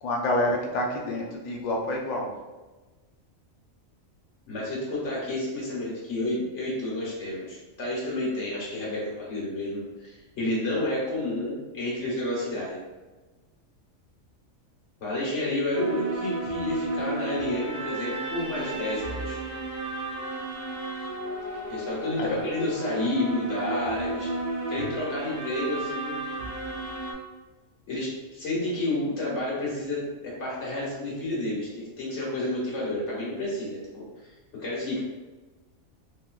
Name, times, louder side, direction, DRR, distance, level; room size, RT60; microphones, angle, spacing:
voice 1, 0.0-2.3 22.2-22.4, left 1 dB, 80° left, 0 dB, 0.4 m, -28 dB
voice 2, 4.5-12.8 15.0-19.4 21.7-24.3 24.7-26.2 27.9-34.0 34.6-35.0, left 1 dB, 60° left, -5 dB, 1.3 m, -30 dB
sound 1, 15.7-27.1, right 2 dB, 65° right, 0.4 m, -33 dB
3.2 x 2.7 x 2.2 m, 1.2 s
omnidirectional pair, 1.4 m